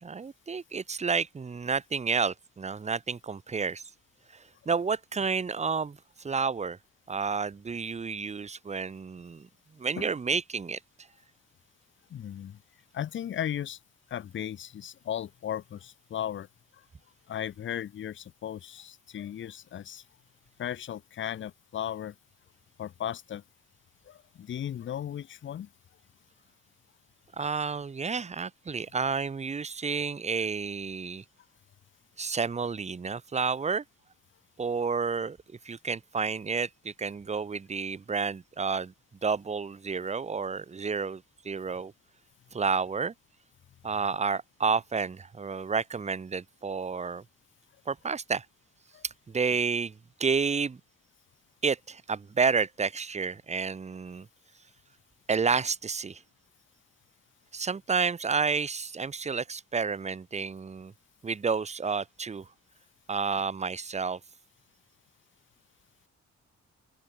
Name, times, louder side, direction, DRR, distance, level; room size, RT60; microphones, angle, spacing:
voice 1, 0.0-3.9 4.3-6.8 7.1-9.5 9.8-10.8 27.4-31.2 32.2-33.8 34.6-35.4 35.6-38.9 39.2-41.9 42.5-43.1 43.8-47.2 47.9-48.5 49.3-50.8 51.6-54.3 55.3-56.2 57.5-60.9 61.2-62.5 63.1-64.2, right 5 dB, 20° right, 0.7 m, -30 dB
voice 2, 12.1-12.6 12.9-13.8 14.1-16.5 17.3-20.0 20.6-22.1 22.8-23.4 24.1-25.7 48.9-49.0, left 10 dB, 40° left, 0.5 m, -36 dB
open air
cardioid pair, 95°, 30 cm